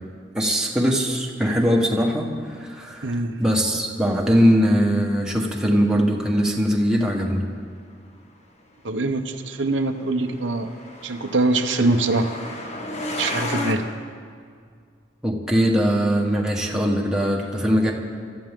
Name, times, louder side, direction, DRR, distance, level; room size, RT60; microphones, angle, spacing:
voice 1, 0.3-7.4 15.2-17.9, equal, 5° right, -2 dB, 1.6 m, -21 dB
voice 2, 3.0-3.3 8.8-10.7 11.0-12.3 13.2-13.9, right 2 dB, 75° right, 5 dB, 0.9 m, -23 dB
Truck, 9.6-13.8, left 2 dB, 40° left, 1.4 m, -32 dB
25.5 x 13.5 x 3.8 m, 2.1 s
head